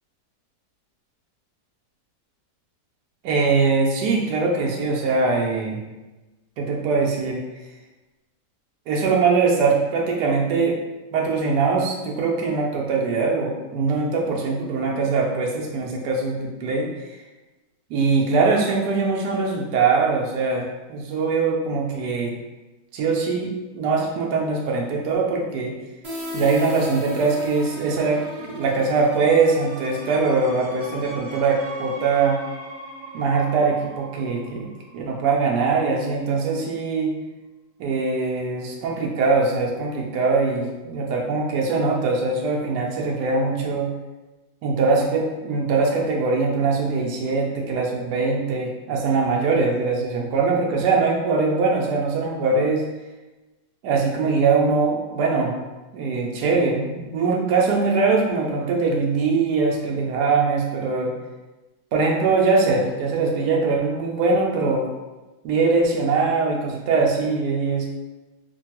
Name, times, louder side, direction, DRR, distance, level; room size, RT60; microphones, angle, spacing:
voice 1, 3.2-5.8 6.6-7.4 8.9-10.8 11.1-16.9 17.9-22.3 22.9-25.8 26.3-32.4 33.1-34.7 34.9-37.1 37.8-43.9 44.6-52.8 53.8-55.5 55.9-61.1 61.9-64.9 65.4-67.9, right 4 dB, 80° right, 0 dB, 1.2 m, -22 dB
sound 1, 26.0-35.6, left 1 dB, 40° right, 0.8 m, -37 dB
3.2 x 2.2 x 2.9 m, 1.1 s
omnidirectional pair, 1.7 m